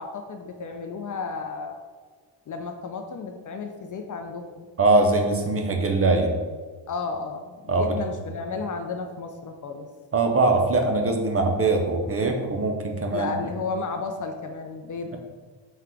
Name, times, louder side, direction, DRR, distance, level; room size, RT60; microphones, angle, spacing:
voice 1, 0.0-1.8 2.5-4.7 6.9-9.9 13.1-15.2, left 4 dB, 45° left, 5 dB, 0.4 m, -33 dB
voice 2, 4.8-6.3 7.7-8.0 10.1-13.3, right 3 dB, 30° right, 3 dB, 0.5 m, -22 dB
3.7 x 2.3 x 4.4 m, 1.4 s
cardioid pair, 85°, 47 cm